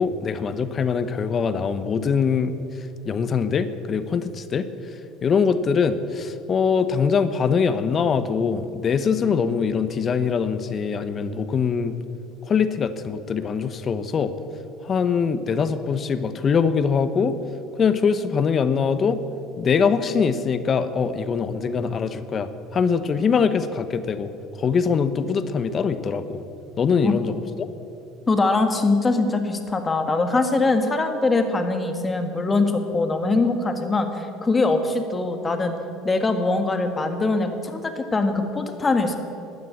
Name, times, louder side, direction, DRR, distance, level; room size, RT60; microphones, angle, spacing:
voice 1, 0.0-11.9 12.4-14.3 14.8-17.3 17.8-19.2 19.6-26.4 26.8-27.7, left 6 dB, 40° left, 12 dB, 0.9 m, -23 dB
voice 2, 28.3-35.8 36.0-39.2, left 3 dB, 25° left, 6 dB, 1.8 m, -22 dB
13.0 x 9.5 x 8.4 m, 2.7 s
hypercardioid pair, 80°, 0 cm